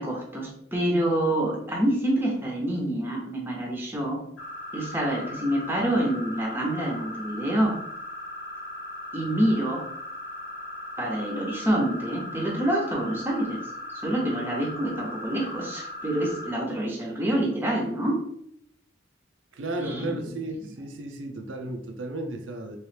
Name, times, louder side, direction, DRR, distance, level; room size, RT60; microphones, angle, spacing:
voice 1, 0.0-4.2 4.7-7.8 9.1-9.8 11.0-13.6 14.0-18.2 19.8-20.3, right 1 dB, 10° right, -1 dB, 0.6 m, -27 dB
sound 1, 4.4-16.5, left 1 dB, 90° left, 1.0 m, -38 dB
voice 2, 19.5-22.8, right 2 dB, 90° right, 4 dB, 0.5 m, -34 dB
3.1 x 3.0 x 3.2 m, 0.72 s
head